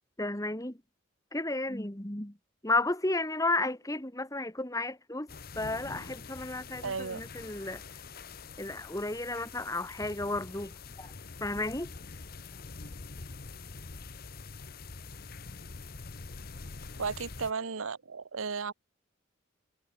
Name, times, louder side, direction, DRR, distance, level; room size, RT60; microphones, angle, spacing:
voice 1, 0.2-0.8 1.3-2.4 2.6-7.8 8.6-11.1 11.4-11.9, left 2 dB, 15° left, 1.8 m, -33 dB
sound 1, 5.3-17.5, left 4 dB, 45° left, 1.0 m, -45 dB
voice 2, 6.8-7.2 17.0-18.7, right 5 dB, 80° right, 0.9 m, -34 dB
head